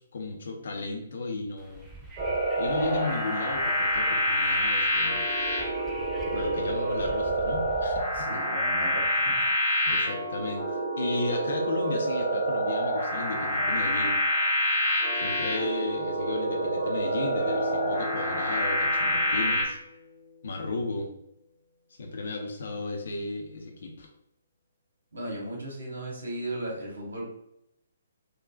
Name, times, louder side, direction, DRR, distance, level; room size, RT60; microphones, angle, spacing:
voice 1, 0.0-1.9 2.6-5.2 6.3-8.3 9.8-14.2 15.1-19.8 20.4-21.1 22.0-24.1, left 3 dB, 55° left, 2 dB, 0.6 m, -34 dB
Wind, 1.6-8.2, right 2 dB, 10° right, 0.4 m, -43 dB
sound 1, 2.2-19.6, equal, 25° right, 1.0 m, -27 dB
voice 2, 8.1-9.4 25.1-27.3, right 1 dB, 65° right, -3 dB, 1.3 m, -36 dB
Guitar, 17.4-20.6 21.0-21.1, left 4 dB, 10° left, 1.1 m, -41 dB
3.7 x 2.3 x 2.4 m, 0.77 s
figure-of-eight pair, 130°, 0 cm